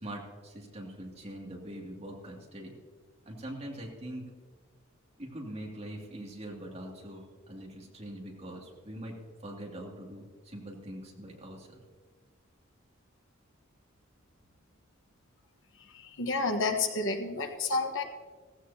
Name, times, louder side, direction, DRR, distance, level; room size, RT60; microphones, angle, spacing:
voice 1, 0.0-2.7 3.3-4.2 5.2-9.2 9.4-11.8, right 1 dB, 30° right, -2 dB, 2.5 m, -43 dB
voice 2, 16.2-18.0, left 3 dB, 65° left, 5 dB, 1.2 m, -29 dB
16.5 x 15.5 x 2.8 m, 1.5 s
head